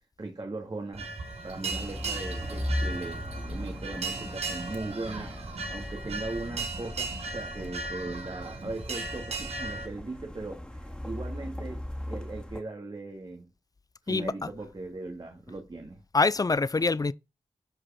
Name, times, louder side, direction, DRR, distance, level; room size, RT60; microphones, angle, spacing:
voice 1, 0.2-1.1 1.4-5.3 5.7-13.5 14.0-16.0, right 2 dB, 45° right, 2.5 m, -39 dB
sound 1, 0.9-9.9, right 3 dB, 90° right, 5.7 m, -36 dB
sound 2, 1.7-12.6, left 1 dB, 10° left, 2.6 m, -38 dB
voice 2, 14.1-14.5 16.1-17.1, left 3 dB, 35° left, 0.6 m, -25 dB
12.5 x 5.1 x 5.9 m
wide cardioid pair, 65°, 11 cm